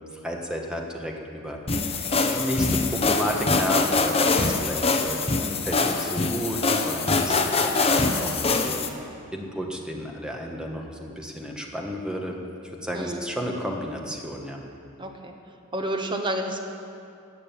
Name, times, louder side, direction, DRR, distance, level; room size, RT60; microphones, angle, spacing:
voice 1, 0.2-1.6 2.3-8.9 9.3-12.4 12.6-14.6, equal, 5° right, 0 dB, 1.4 m, -32 dB
sound 1, 1.7-8.9, left 3 dB, 30° left, 0.9 m, -24 dB
voice 2, 12.9-13.2 15.0-15.3 15.7-16.6, right 1 dB, 25° right, 4 dB, 1.2 m, -29 dB
16.5 x 6.7 x 9.1 m, 2.7 s
head